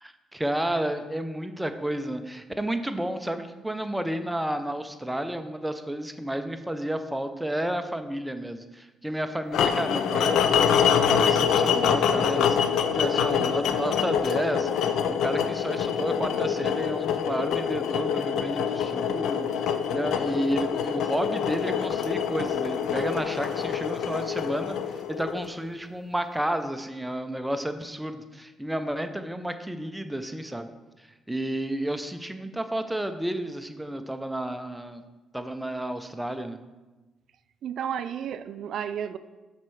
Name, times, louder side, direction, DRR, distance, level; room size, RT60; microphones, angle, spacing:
voice 1, 0.0-12.6 12.9-19.5 19.9-30.7 31.0-35.0 35.3-36.6, right 1 dB, 5° right, 8 dB, 0.5 m, -31 dB
sound 1, 9.5-25.6, left 7 dB, 80° left, 0.4 m, -25 dB
voice 2, 37.6-39.2, right 8 dB, 70° right, 13 dB, 0.3 m, -32 dB
6.6 x 4.3 x 4.6 m, 1.2 s
cardioid pair, 90°, 0 cm